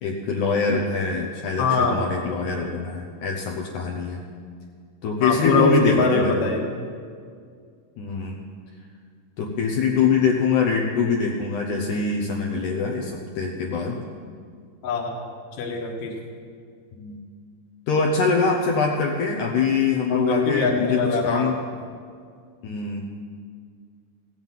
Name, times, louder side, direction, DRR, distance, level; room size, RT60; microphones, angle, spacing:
voice 1, 0.0-4.2 5.0-6.5 8.0-8.4 9.4-14.0 17.0-17.2 17.9-21.6 22.6-23.0, left 5 dB, 85° left, 0 dB, 1.7 m, -24 dB
voice 2, 1.6-2.0 5.2-6.6 14.8-16.2 20.1-21.5, left 4 dB, 50° left, 0 dB, 2.0 m, -22 dB
16.5 x 7.9 x 7.3 m, 2.1 s
omnidirectional pair, 4.9 m